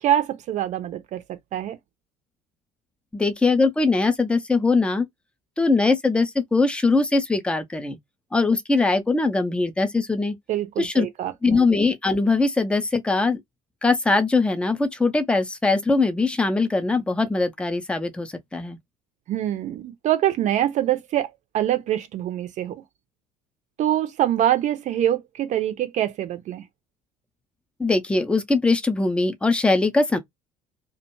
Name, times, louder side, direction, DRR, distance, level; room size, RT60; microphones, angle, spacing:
voice 1, 0.0-1.8 10.5-11.6 19.3-22.8 23.8-26.6, right 12 dB, 40° right, 0.6 m, -24 dB
voice 2, 3.1-5.1 5.6-8.0 8.3-10.4 10.8-11.1 11.4-13.4 13.8-18.8 27.8-30.2, left 3 dB, 5° left, 0.6 m, -21 dB
2.4 x 2.2 x 3.0 m
figure-of-eight pair, 60°, 19 cm